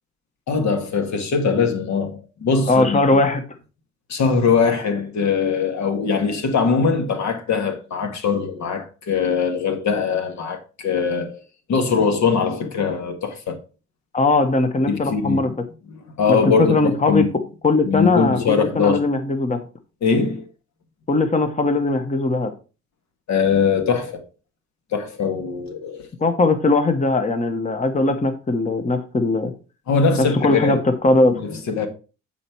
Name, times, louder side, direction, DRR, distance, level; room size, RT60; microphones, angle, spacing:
voice 1, 0.5-3.0 4.1-11.4 11.7-13.6 14.8-15.4 16.2-17.3 17.8-19.0 20.0-20.5 23.3-24.3 24.9-26.1 29.9-30.8 31.3-31.9, left 5 dB, 65° left, 1.6 m, -21 dB
voice 2, 2.7-3.4 14.1-15.5 16.3-17.3 17.6-19.7 21.1-22.5 26.2-29.5 30.4-31.4, left 2 dB, 25° left, 1.0 m, -19 dB
8.6 x 4.3 x 4.5 m
cardioid pair, 90°, 30 cm